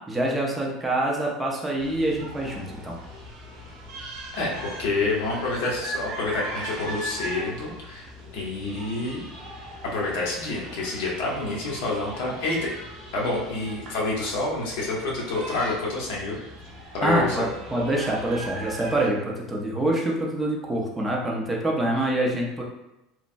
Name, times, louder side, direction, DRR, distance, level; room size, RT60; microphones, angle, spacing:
voice 1, 0.1-3.0 17.0-22.6, right 1 dB, 10° right, -3 dB, 0.5 m, -26 dB
sound 1, 1.8-19.1, right 1 dB, 40° right, 1.1 m, -39 dB
voice 2, 4.3-9.2 9.9-12.7 13.1-16.4 16.9-17.5, left 2 dB, 70° left, -3 dB, 0.8 m, -28 dB
3.0 x 2.0 x 2.5 m, 0.90 s
cardioid pair, 150°, 0 cm